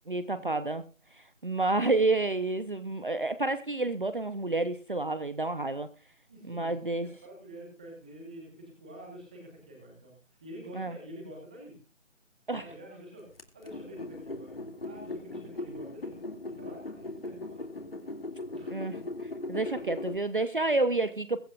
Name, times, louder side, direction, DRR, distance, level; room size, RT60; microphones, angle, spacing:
voice 1, 0.1-0.8 1.1-5.9 6.5-7.1 10.7-11.0 12.5-12.6 18.7-19.0 19.5-21.4, right 2 dB, 40° right, 12 dB, 0.9 m, -29 dB
voice 2, 6.3-6.9 7.2-11.8 12.6-13.3 13.5-14.5 14.8-16.2 16.5-17.6 18.5-18.9 19.5-19.8, equal, 5° right, 0 dB, 1.5 m, -47 dB
sound 1, 13.4-20.2, left 2 dB, 50° left, 2.4 m, -39 dB
22.5 x 8.5 x 2.5 m, 0.34 s
figure-of-eight pair, 165°, 38 cm